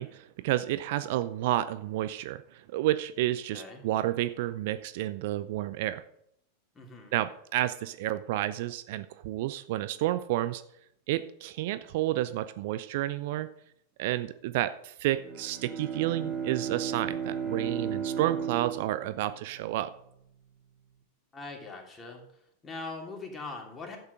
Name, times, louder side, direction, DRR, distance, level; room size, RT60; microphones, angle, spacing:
voice 1, 0.0-6.0 7.1-10.6 11.1-13.5 14.0-19.9, right 14 dB, 50° right, 13 dB, 0.5 m, -30 dB
voice 2, 3.5-3.8 6.7-7.1 21.3-22.2 22.6-24.0, left 3 dB, 15° left, 1 dB, 2.9 m, -41 dB
Bowed string instrument, 15.2-19.9, right 7 dB, 25° right, 2.5 m, -35 dB
11.5 x 8.0 x 5.1 m, 0.74 s
figure-of-eight pair, 90°, 0 cm